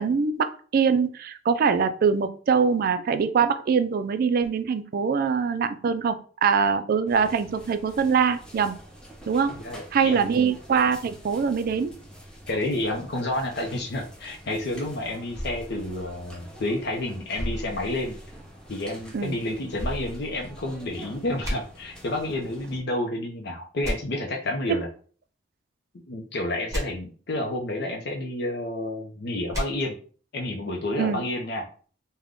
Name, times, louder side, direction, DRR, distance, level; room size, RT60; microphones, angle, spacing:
voice 1, 0.0-6.2 6.4-8.8 9.3-9.6 9.9-11.9 19.1-19.4 31.0-31.2, right 6 dB, 50° right, 10 dB, 0.3 m, -23 dB
sound 1, 7.1-22.8, equal, 5° left, 0.6 m, -47 dB
voice 2, 9.6-10.5 12.5-18.2 18.7-24.9 26.1-29.9 30.3-31.7, left 1 dB, 60° left, 1 dB, 0.6 m, -30 dB
sound 2, 15.3-16.8 17.3-18.6 19.8-20.9 21.4-21.5 23.8-23.9 26.7-26.8 29.5-29.6, equal, 15° right, 1.1 m, -33 dB
3.5 x 2.2 x 3.6 m, 0.42 s
head